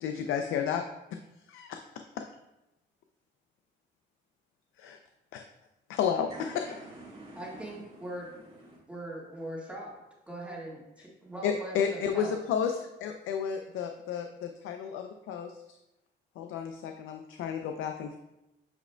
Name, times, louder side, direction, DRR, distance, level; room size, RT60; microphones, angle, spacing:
voice 1, 0.0-0.8 1.1-1.2 1.5-1.8 2.2-2.3 4.8-5.0 5.3-5.4 5.9-6.3 6.5-6.6 11.4-15.8 16.4-18.2, left 7 dB, 80° left, 5 dB, 0.5 m, -32 dB
voice 2, 6.3-8.8, right 2 dB, 35° right, -7 dB, 1.3 m, -48 dB
voice 3, 7.3-8.3 8.9-10.0 10.3-12.4, right 1 dB, 5° right, -5 dB, 1.7 m, -41 dB
8.7 x 5.0 x 2.2 m, 0.94 s
cardioid pair, 90°, 20 cm